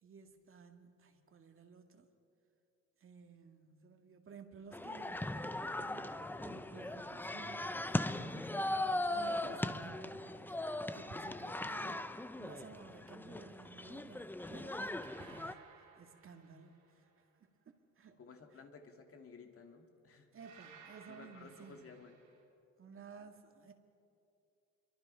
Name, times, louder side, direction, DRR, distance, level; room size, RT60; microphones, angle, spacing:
voice 1, 0.0-2.1 3.0-7.9 8.2-15.6 16.0-17.1 17.7-18.2 18.5-18.6 20.3-21.9 22.8-23.7, right 5 dB, 45° right, 5 dB, 2.0 m, -55 dB
sound 1, 4.7-15.5, left 1 dB, 5° left, 0.6 m, -39 dB
sound 2, 15.0-17.1 20.4-22.4, right 6 dB, 85° right, 4.7 m, -60 dB
voice 2, 18.2-20.3 21.1-22.2, left 4 dB, 50° left, 4 dB, 2.6 m, -55 dB
27.0 x 23.5 x 5.7 m, 2.7 s
cardioid pair, 125°, 30 cm